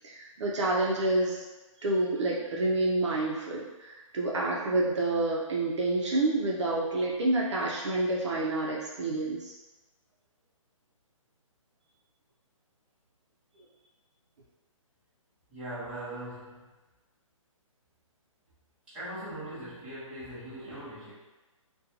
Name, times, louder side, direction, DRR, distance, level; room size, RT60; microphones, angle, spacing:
voice 1, 0.0-1.4 1.8-9.5, right 2 dB, 55° right, -3 dB, 0.5 m, -28 dB
voice 2, 15.5-16.7 18.9-21.1, right 1 dB, 5° right, -16 dB, 0.8 m, -40 dB
2.5 x 2.2 x 2.8 m, 1.2 s
hypercardioid pair, 170°, 17 cm